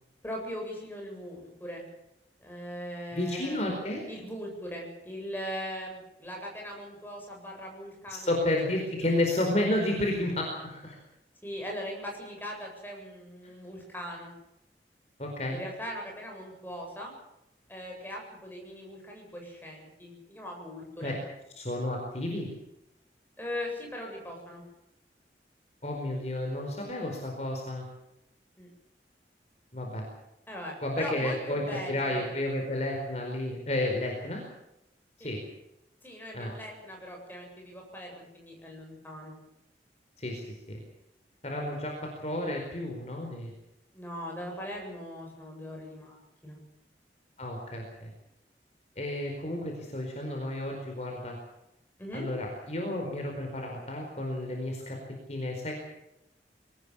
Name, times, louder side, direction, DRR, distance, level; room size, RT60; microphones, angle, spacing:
voice 1, 0.2-1.8 2.4-3.6 4.1-8.3 11.4-14.3 15.5-17.1 17.7-21.2 23.4-24.6 28.6-28.7 30.5-32.2 35.2-35.4 36.0-39.4 43.9-46.6 52.0-52.3, equal, 10° left, 0 dB, 8.0 m, -40 dB
voice 2, 3.1-4.0 8.1-11.0 15.2-15.6 21.0-21.2 21.6-22.5 25.8-27.8 29.7-30.0 30.8-34.4 35.2-35.4 36.3-36.5 40.2-40.8 41.4-43.5 47.4-48.1 49.0-51.4 52.1-55.0 55.3-55.7, left 1 dB, 40° left, 1 dB, 4.6 m, -31 dB
23.5 x 19.0 x 7.2 m, 0.86 s
head